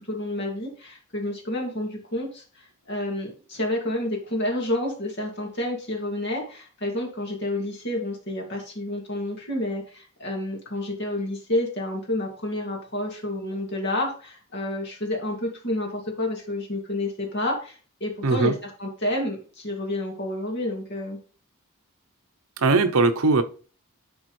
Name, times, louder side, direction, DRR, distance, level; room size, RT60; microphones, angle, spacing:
voice 1, 0.1-21.2, left 1 dB, 50° left, 2.2 m, -29 dB
voice 2, 18.2-18.5 22.6-23.4, right 3 dB, 75° right, 0.8 m, -20 dB
11.0 x 4.2 x 3.2 m
head